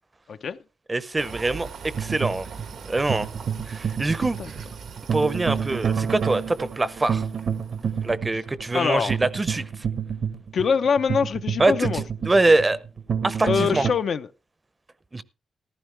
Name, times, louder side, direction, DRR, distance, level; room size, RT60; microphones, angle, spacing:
voice 1, 0.9-1.7 2.0-2.5 2.9-3.3 3.7-4.4 5.1-7.2 8.0-9.6 11.6-11.9 12.3-12.8 13.2-13.8 15.1-15.2, right 2 dB, 25° right, 0.7 m, -23 dB
sound 1, 1.2-8.1, right 5 dB, 90° right, 1.7 m, -42 dB
sound 2, 1.9-13.9, right 7 dB, 70° right, 1.2 m, -29 dB
voice 2, 8.7-9.2 10.5-12.0 13.5-14.3, left 6 dB, 65° left, 0.6 m, -24 dB
15.0 x 12.0 x 3.3 m
wide cardioid pair, 120°, 0 cm